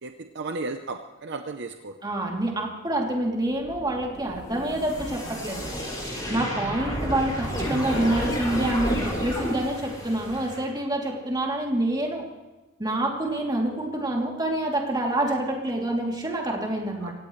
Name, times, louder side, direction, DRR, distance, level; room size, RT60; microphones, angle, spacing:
voice 1, 0.0-2.0 17.0-17.1, right 3 dB, 55° right, 6 dB, 0.8 m, -34 dB
voice 2, 2.0-5.7 6.3-12.3 12.8-17.1, right 1 dB, 20° right, -1 dB, 3.0 m, -27 dB
sound 1, 3.5-10.6, equal, 20° left, 6.5 m, -31 dB
25.0 x 16.5 x 3.2 m, 1.1 s
head